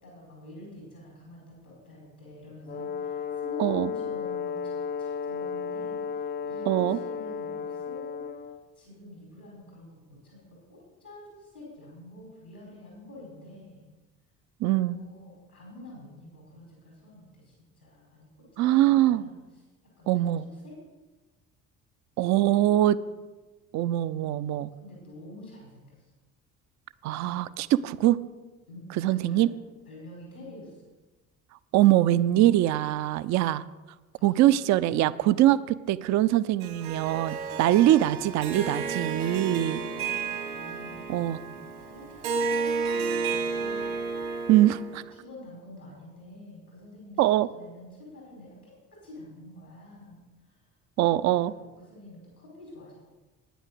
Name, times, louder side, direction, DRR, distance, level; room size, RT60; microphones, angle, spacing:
voice 1, 0.0-8.3 8.7-13.9 14.7-19.3 20.0-20.2 20.5-20.7 22.3-22.8 24.4-24.5 24.8-26.0 28.7-29.4 29.9-30.8 34.1-34.4 38.9-39.1 39.5-43.9 44.4-44.7 45.1-50.7 51.0-53.0, left 1 dB, 90° left, -4 dB, 4.6 m, -48 dB
Brass instrument, 2.7-8.7, left 6 dB, 25° left, 0.5 m, -34 dB
voice 2, 3.6-3.9 6.7-7.0 14.6-15.0 18.6-19.2 20.1-20.4 22.2-23.0 23.7-24.7 27.0-28.2 29.0-29.5 31.7-33.6 34.2-39.8 41.1-41.4 44.5-45.0 47.2-47.5 51.0-51.5, right 14 dB, 40° right, 16 dB, 0.5 m, -23 dB
Harp, 36.6-45.0, right 4 dB, 70° right, 1.7 m, -32 dB
9.6 x 9.2 x 6.5 m, 1.2 s
figure-of-eight pair, 50°, 43 cm